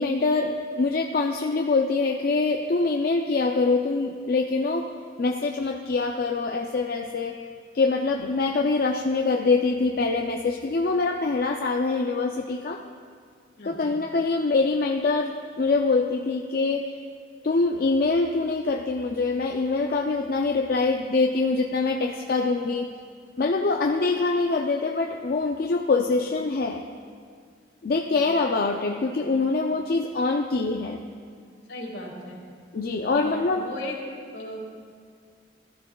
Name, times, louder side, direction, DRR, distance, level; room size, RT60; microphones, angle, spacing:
voice 1, 0.0-4.9 5.2-7.4 7.7-12.8 13.7-16.8 17.4-22.9 23.4-26.8 27.8-31.0 32.7-33.7, left 3 dB, 55° left, 2 dB, 0.4 m, -24 dB
voice 2, 13.6-14.0 31.7-32.4 33.1-33.9 34.3-34.7, left 1 dB, 80° left, -1 dB, 2.0 m, -36 dB
15.5 x 12.0 x 2.3 m, 2.1 s
head